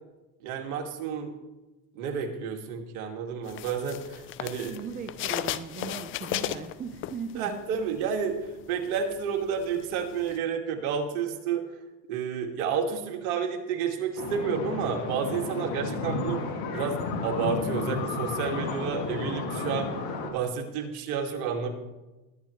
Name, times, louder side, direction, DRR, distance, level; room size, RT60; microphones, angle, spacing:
voice 1, 0.4-1.3 1.9-4.7 7.3-11.7 12.1-16.4 16.7-19.9 20.3-21.7, right 6 dB, 65° right, 3 dB, 2.4 m, -30 dB
sound 1, 3.5-7.7 8.0-10.4, left 13 dB, 30° left, 0.4 m, -35 dB
voice 2, 4.4-7.5, right 6 dB, 20° right, 8 dB, 0.7 m, -38 dB
sound 2, 14.2-20.3, left 3 dB, 45° left, 2.4 m, -32 dB
21.0 x 9.1 x 3.2 m, 1.1 s
supercardioid pair, 120°, 48 cm